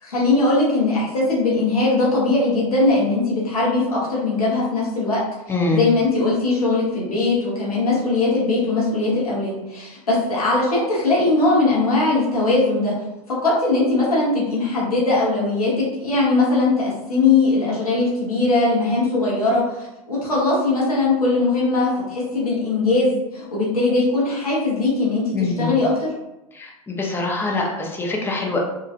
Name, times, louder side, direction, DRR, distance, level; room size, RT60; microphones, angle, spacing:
voice 1, 0.0-5.2 5.7-12.9 13.3-26.1, left 3 dB, 85° left, -6 dB, 1.0 m, -20 dB
voice 2, 5.5-5.9 25.3-25.8 26.5-28.6, left 3 dB, 10° left, 0 dB, 0.6 m, -24 dB
2.9 x 2.4 x 2.5 m, 0.95 s
hypercardioid pair, 95°, 18 cm